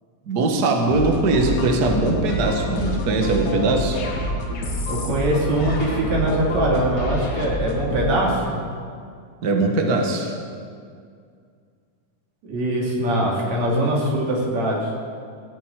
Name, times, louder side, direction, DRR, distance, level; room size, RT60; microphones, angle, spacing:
voice 1, 0.3-4.0 9.4-10.3, right 2 dB, 85° right, 2 dB, 0.8 m, -21 dB
sound 1, 0.9-8.3, equal, 55° left, 3.1 m, -27 dB
voice 2, 4.9-8.6 12.4-14.9, right 1 dB, 50° right, -3 dB, 3.7 m, -22 dB
15.5 x 8.0 x 9.0 m, 2.2 s
omnidirectional pair, 4.3 m